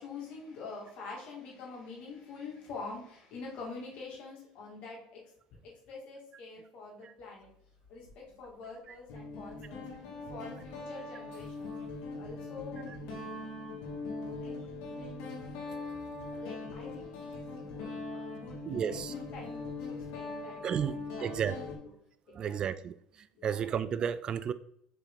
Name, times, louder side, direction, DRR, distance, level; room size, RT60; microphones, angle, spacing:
voice 1, 0.0-5.2 5.6-7.5 7.9-9.9 10.3-11.8 12.2-13.6 14.1-15.4 16.3-21.7 22.3-22.8 23.3-23.7, left 4 dB, 55° left, -3 dB, 2.6 m, -46 dB
Guitar, 7.8-8.1 9.1-21.8, left 3 dB, 80° left, 2.1 m, -41 dB
voice 2, 18.7-19.1 20.6-21.6 22.3-24.5, right 8 dB, 35° right, 14 dB, 0.3 m, -33 dB
6.7 x 4.4 x 3.9 m, 0.71 s
supercardioid pair, 115°, 2 cm